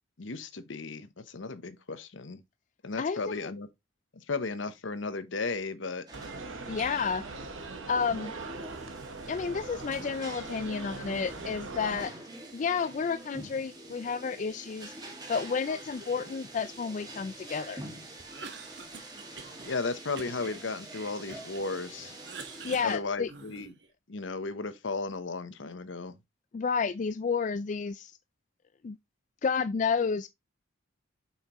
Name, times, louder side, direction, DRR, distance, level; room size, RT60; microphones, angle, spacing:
voice 1, 0.2-2.4 2.8-3.7 4.1-6.0 19.6-22.1 22.8-23.7 24.1-26.2, left 3 dB, 75° left, 0.9 m, -35 dB
voice 2, 3.0-3.5 6.7-7.2 7.9-8.3 9.3-12.1 12.5-14.9 15.3-17.8 22.6-23.3 26.5-28.1 28.8-29.0 29.4-30.3, left 5 dB, 40° left, 0.3 m, -31 dB
sound 1, 6.1-22.8, right 1 dB, 20° right, 1.8 m, -46 dB
sound 2, 6.1-12.0, right 3 dB, 85° right, 1.2 m, -41 dB
Cough, 18.2-19.8 20.2-21.6 22.0-23.9, right 4 dB, 60° right, 1.4 m, -46 dB
7.1 x 5.7 x 3.0 m
head